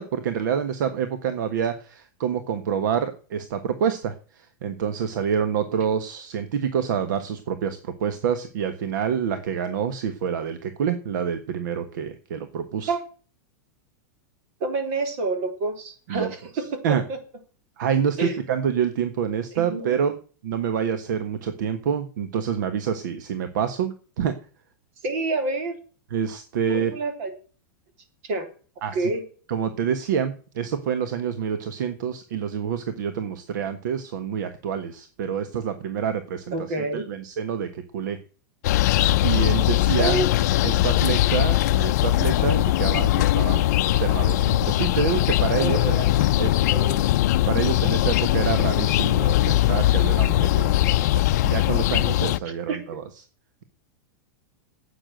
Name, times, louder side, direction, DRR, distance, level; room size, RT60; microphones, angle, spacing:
voice 1, 0.0-12.9 16.1-17.0 17.8-20.1 20.4-24.3 26.1-26.9 28.8-29.1 29.5-38.2 39.2-40.2 40.6-46.0 46.4-46.5 47.5-53.2, right 7 dB, 65° right, 10 dB, 1.4 m, -27 dB
voice 2, 14.6-17.0 18.2-18.3 19.5-20.0 25.0-25.7 26.7-27.3 28.3-28.5 28.9-29.2 36.5-37.0 40.0-40.3 45.6-47.1 52.7-53.0, right 3 dB, 45° right, 7 dB, 3.5 m, -28 dB
sound 1, 38.6-52.4, left 15 dB, 55° left, 0.6 m, -20 dB
10.5 x 8.5 x 7.9 m, 0.39 s
supercardioid pair, 170°, 11 cm